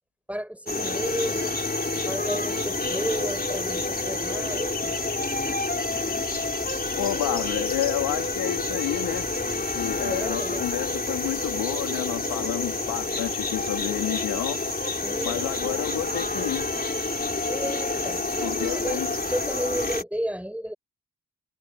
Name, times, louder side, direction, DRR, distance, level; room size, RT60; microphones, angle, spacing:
voice 1, 0.3-1.6 2.1-5.0 7.1-7.4 10.0-10.6 15.0-16.5 17.5-20.7, equal, 5° right, 6.2 m, -33 dB
sound 1, 0.7-20.0, left 2 dB, 25° left, 4.1 m, -28 dB
voice 2, 7.0-9.3 9.7-14.6 15.2-16.7 18.4-19.1, left 14 dB, 90° left, 2.6 m, -30 dB
supercardioid pair, 45°, 36 cm